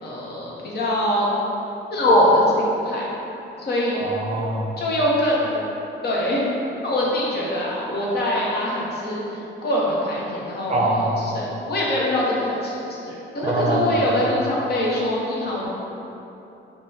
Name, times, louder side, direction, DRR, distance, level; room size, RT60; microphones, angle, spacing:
voice 1, 0.0-1.3 1.9-3.1 3.6-4.1 4.8-5.6 6.0-6.5 6.8-15.7, left 1 dB, 55° left, -5 dB, 0.9 m, -23 dB
voice 2, 3.9-4.7 10.7-11.1 13.4-13.9, right 2 dB, 35° right, -1 dB, 0.5 m, -24 dB
5.3 x 2.2 x 2.7 m, 3.0 s
cardioid pair, 90°, 20 cm